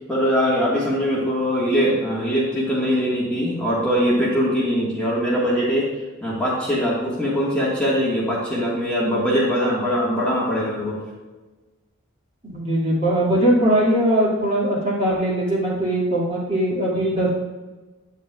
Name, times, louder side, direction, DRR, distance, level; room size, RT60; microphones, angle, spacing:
voice 1, 0.1-5.9 6.2-11.0 16.9-17.2, equal, 5° left, -7 dB, 1.5 m, -22 dB
voice 2, 12.4-17.3, right 1 dB, 30° right, -5 dB, 2.0 m, -20 dB
8.7 x 8.2 x 2.3 m, 1.2 s
head